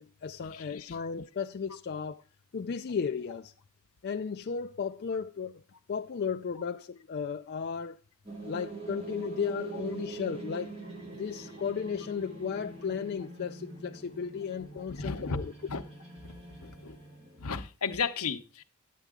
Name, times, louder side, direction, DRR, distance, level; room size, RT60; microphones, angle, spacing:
voice 1, 0.0-2.2 2.5-3.5 4.0-5.6 5.9-8.0 8.4-10.7 11.1-15.5, left 6 dB, 45° left, 0.4 m, -35 dB
voice 2, 0.5-1.0 14.9-15.4 15.7-15.8 16.2-16.3 16.6-17.0 17.4-18.6, left 5 dB, 75° left, 0.8 m, -34 dB
sound 1, 8.2-17.6, right 3 dB, 25° right, 2.3 m, -44 dB
9.4 x 9.0 x 3.7 m
head